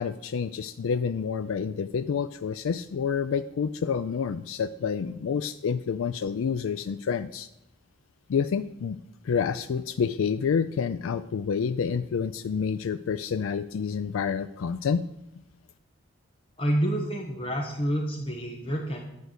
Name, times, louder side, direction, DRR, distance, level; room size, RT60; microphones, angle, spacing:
voice 1, 0.0-7.5 8.3-9.0 9.2-15.0, left 6 dB, 85° left, 12 dB, 0.4 m, -28 dB
voice 2, 16.6-19.0, right 1 dB, 25° left, 0 dB, 1.2 m, -28 dB
10.5 x 4.6 x 8.0 m, 0.85 s
head